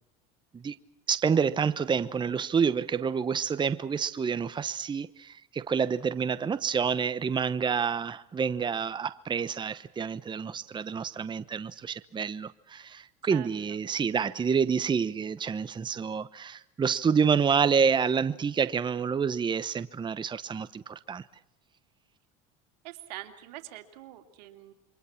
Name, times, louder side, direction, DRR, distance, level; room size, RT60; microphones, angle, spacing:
voice 1, 1.1-21.2, right 6 dB, 20° right, 1.0 m, -28 dB
voice 2, 22.8-24.7, right 15 dB, 85° right, 2.9 m, -44 dB
28.0 x 24.5 x 5.9 m
supercardioid pair, 110°, 21 cm